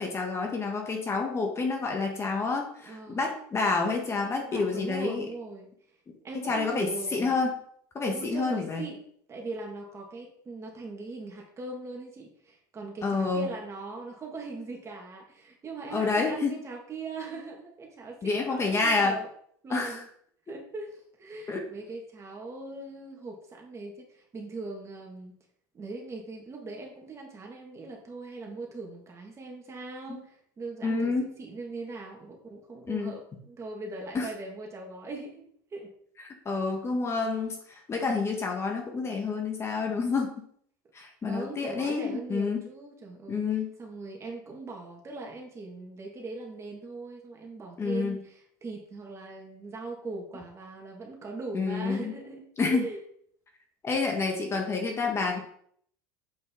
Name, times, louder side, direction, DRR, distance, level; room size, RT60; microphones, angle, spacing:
voice 1, 0.0-5.3 6.3-7.6 7.9-8.8 13.0-13.5 15.9-16.6 18.2-19.2 19.7-19.9 21.5-21.6 30.1-30.2 30.8-31.3 32.9-33.2 34.1-34.3 36.4-40.3 40.9-42.6 43.3-43.7 47.8-48.2 51.5-52.1 52.6-52.9 53.8-55.4, left 4 dB, 25° left, 2 dB, 1.6 m, -28 dB
voice 2, 2.8-3.3 4.3-5.7 6.2-7.4 8.1-9.0 9.3-19.3 19.6-20.1 20.5-25.4 25.7-35.4 35.7-35.9 41.2-53.0, right 3 dB, 25° right, 1 dB, 2.2 m, -40 dB
7.8 x 5.5 x 3.9 m, 0.63 s
supercardioid pair, 110°, 11 cm